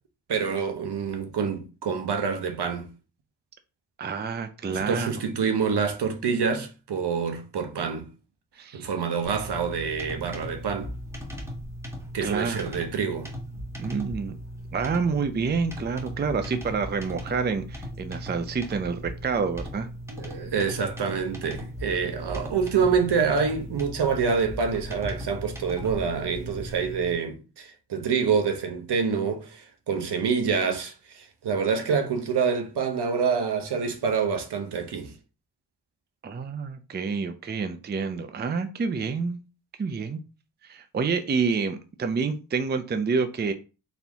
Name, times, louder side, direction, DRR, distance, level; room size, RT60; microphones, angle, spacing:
voice 1, 0.3-2.9 4.7-8.1 8.7-10.9 12.1-13.3 20.1-35.1, right 6 dB, 70° right, 0.9 m, -27 dB
voice 2, 4.0-5.1 8.6-8.9 12.2-12.7 13.8-14.4 14.7-19.9 36.2-39.4 39.8-40.2 40.6-43.5, right 5 dB, 25° right, 0.5 m, -28 dB
sound 1, 9.2-27.1, equal, 5° right, 1.2 m, -38 dB
4.3 x 2.8 x 3.4 m
cardioid pair, 80°, 41 cm